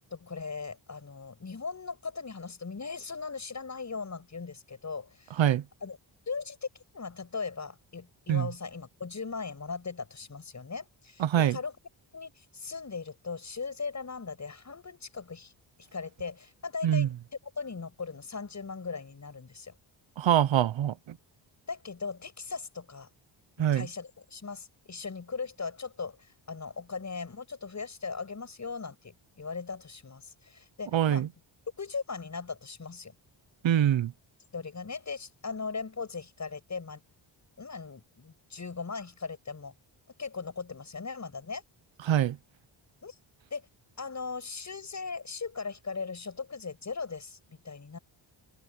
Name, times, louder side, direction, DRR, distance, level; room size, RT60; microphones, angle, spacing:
voice 1, 0.1-5.4 5.8-6.0 6.3-6.7 6.9-11.8 12.1-15.5 15.9-17.1 17.6-19.7 21.7-23.1 23.6-31.3 31.8-33.1 34.5-37.0 37.6-39.7 40.2-41.6 43.0-43.2 43.5-43.7 44.0-48.0, left 4 dB, 35° left, 6.5 m, -38 dB
voice 2, 11.2-11.6 16.8-17.1 20.2-20.9 23.6-23.9 30.9-31.3 33.6-34.1 42.1-42.4, right 10 dB, 65° right, 0.9 m, -24 dB
open air
wide cardioid pair, 125°, 48 cm